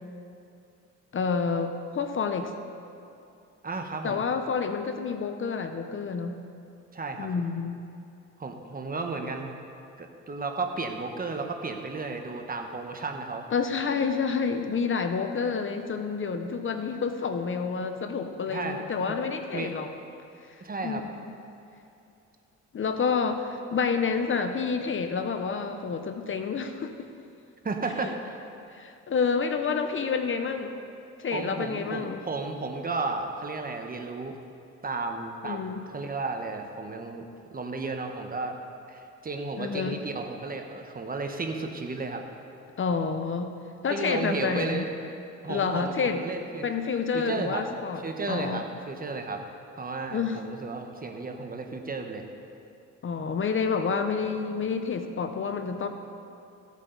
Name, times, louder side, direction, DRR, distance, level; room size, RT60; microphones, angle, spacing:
voice 1, 1.1-2.5 4.0-6.4 7.2-7.8 13.5-19.9 20.8-21.3 22.7-27.1 28.7-30.7 31.2-32.2 35.4-35.8 39.6-39.9 42.8-43.5 43.8-44.8 45.5-46.2 46.6-48.0 48.3-48.6 50.1-50.4 53.0-55.9, left 5 dB, 45° left, 7 dB, 0.8 m, -29 dB
voice 2, 3.6-4.2 6.9-7.3 8.4-9.5 10.0-13.5 18.5-19.2 19.5-19.7 20.6-21.0 27.6-28.4 31.3-34.3 34.8-38.6 38.9-42.2 43.9-44.9 45.4-46.6 47.1-47.6 48.0-49.4 49.8-52.2, right 3 dB, 30° right, 4 dB, 1.2 m, -33 dB
16.0 x 8.3 x 4.0 m, 2.7 s
cardioid pair, 90°, 30 cm